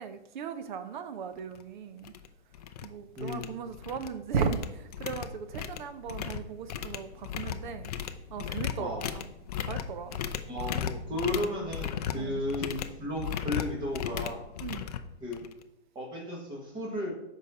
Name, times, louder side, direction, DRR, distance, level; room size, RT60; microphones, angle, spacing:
voice 1, 0.0-2.1 2.8-7.9 8.3-9.3 9.6-10.2 11.1-11.2 12.1-12.4 14.6-14.9, right 6 dB, 45° right, 10 dB, 0.8 m, -36 dB
sound 1, 1.5-1.6 2.0-2.3 2.5-2.9 3.2-4.1 4.4-15.6, left 9 dB, 35° left, 0.5 m, -36 dB
voice 2, 3.2-3.6 8.8-9.0 10.5-14.4 15.2-15.4 16.0-17.1, left 1 dB, 15° right, -1 dB, 1.6 m, -34 dB
7.3 x 5.4 x 4.1 m, 0.87 s
hypercardioid pair, 150°, 34 cm